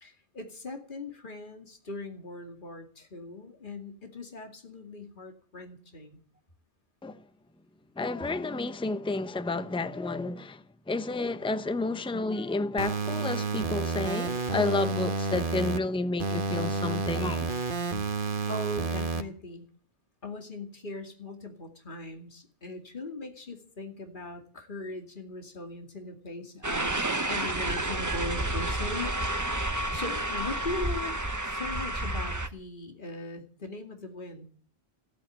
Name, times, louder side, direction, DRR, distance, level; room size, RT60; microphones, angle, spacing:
voice 1, 0.0-6.2 18.5-19.7 20.2-29.5 29.9-31.1 31.4-34.5, left 2 dB, 50° left, 2.6 m, -40 dB
voice 2, 8.0-17.5, left 3 dB, 5° left, 0.7 m, -31 dB
sound 1, 12.8-15.8 16.2-19.2, right 4 dB, 55° right, 1.4 m, -30 dB
sound 2, 26.6-32.5, right 1 dB, 20° right, 1.0 m, -30 dB
15.5 x 8.8 x 10.0 m
omnidirectional pair, 1.1 m